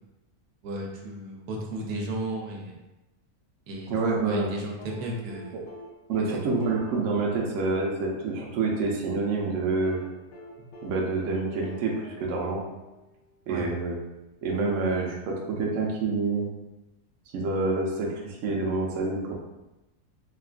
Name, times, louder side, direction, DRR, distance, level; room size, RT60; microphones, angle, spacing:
voice 1, 0.6-2.8 3.7-3.9 4.2-5.6 6.3-6.5 13.5-13.7, right 1 dB, 90° right, -1 dB, 1.1 m, -34 dB
voice 2, 3.9-4.5 6.1-10.0 10.8-12.6 13.5-13.9 14.4-16.5 17.3-19.3, right 3 dB, 65° right, -2 dB, 0.9 m, -27 dB
sound 1, 4.8-8.9 9.8-13.4 14.8-14.9, left 2 dB, 65° left, 0.8 m, -46 dB
3.5 x 2.4 x 2.3 m, 0.99 s
omnidirectional pair, 1.6 m